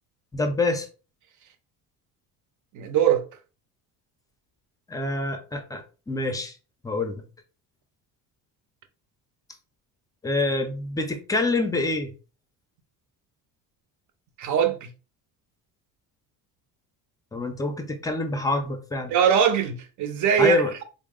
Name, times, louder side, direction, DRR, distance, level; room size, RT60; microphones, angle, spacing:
voice 1, 0.3-0.9 4.9-5.8 6.1-6.5 6.8-7.2 10.2-12.1 17.3-19.1 20.4-20.7, left 2 dB, 10° left, 0.5 m, -26 dB
voice 2, 2.7-3.2 14.4-14.9 19.1-20.8, right 8 dB, 50° right, 0.6 m, -22 dB
3.8 x 2.0 x 3.6 m
cardioid pair, 140°, 38 cm